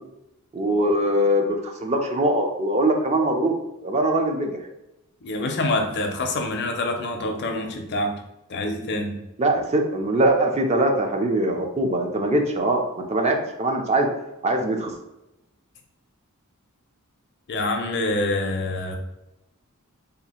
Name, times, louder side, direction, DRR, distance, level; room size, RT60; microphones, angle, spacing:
voice 1, 0.5-3.5 3.8-4.6 9.4-12.8 13.1-14.1 14.4-14.9, right 1 dB, 30° right, 3 dB, 0.4 m, -22 dB
voice 2, 5.2-8.2 8.5-9.2 17.5-19.0, left 2 dB, 50° left, 4 dB, 0.5 m, -26 dB
2.7 x 2.4 x 4.2 m, 0.92 s
head